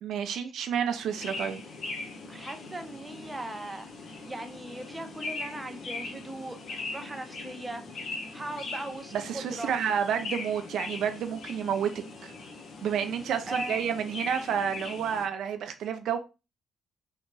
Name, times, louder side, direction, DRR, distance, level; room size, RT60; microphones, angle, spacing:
voice 1, 0.0-1.6 9.1-12.3 12.8-16.2, right 8 dB, 75° right, 0.4 m, -30 dB
sound 1, 0.9-15.3, left 3 dB, 65° left, 0.7 m, -40 dB
voice 2, 2.3-9.7 13.5-13.8, right 2 dB, 15° right, 0.6 m, -39 dB
3.4 x 2.9 x 2.2 m
cardioid pair, 90°, 0 cm